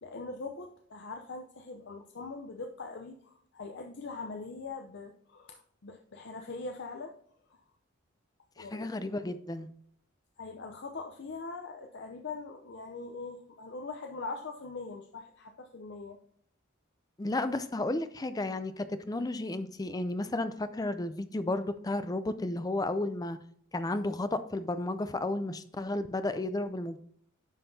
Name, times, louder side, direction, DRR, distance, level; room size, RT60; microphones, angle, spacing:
voice 1, 0.0-7.2 7.5-7.6 8.6-8.9 10.4-16.2, left 3 dB, 55° left, 4 dB, 0.6 m, -42 dB
voice 2, 8.6-9.7 17.2-23.4 23.7-27.0, left 2 dB, 20° left, 11 dB, 0.5 m, -33 dB
10.0 x 5.6 x 2.7 m, 0.66 s
head